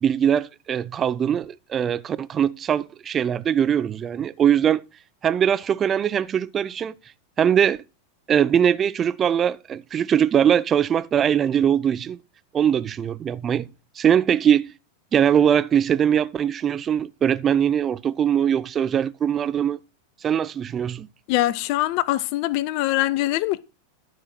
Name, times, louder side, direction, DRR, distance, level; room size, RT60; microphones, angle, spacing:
voice 1, 0.0-4.8 5.2-6.9 7.4-7.8 8.3-12.2 12.5-13.7 14.0-14.7 15.1-19.8 20.2-21.1, right 9 dB, 25° right, 0.6 m, -21 dB
voice 2, 21.3-23.6, left 16 dB, 45° left, 0.5 m, -23 dB
13.5 x 4.9 x 5.9 m
figure-of-eight pair, 90°, 0 cm